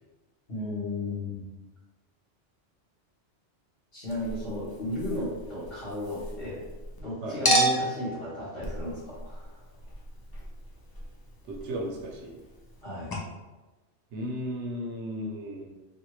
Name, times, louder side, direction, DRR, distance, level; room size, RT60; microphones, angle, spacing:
voice 1, 0.5-1.4 3.9-6.7 7.0-9.5 12.8-13.1, left 1 dB, 50° left, -9 dB, 1.8 m, -34 dB
Chink clink, 4.1-7.0 7.4-12.8 13.1-13.2, right 1 dB, 35° left, 0.3 m, -33 dB
voice 2, 11.5-12.3 14.1-15.7, equal, 75° right, 1 dB, 0.9 m, -35 dB
4.1 x 2.5 x 3.0 m, 1.2 s
omnidirectional pair, 1.2 m